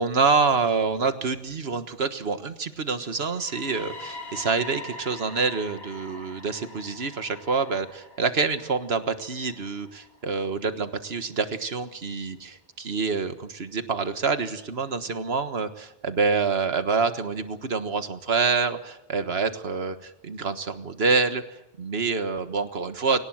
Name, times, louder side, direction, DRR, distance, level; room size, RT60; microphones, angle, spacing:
voice 1, 0.0-23.2, right 4 dB, 75° right, 9 dB, 1.7 m, -27 dB
sound 1, 3.1-11.0, left 2 dB, 65° left, 4.3 m, -43 dB
22.0 x 19.0 x 7.9 m, 0.86 s
omnidirectional pair, 1.1 m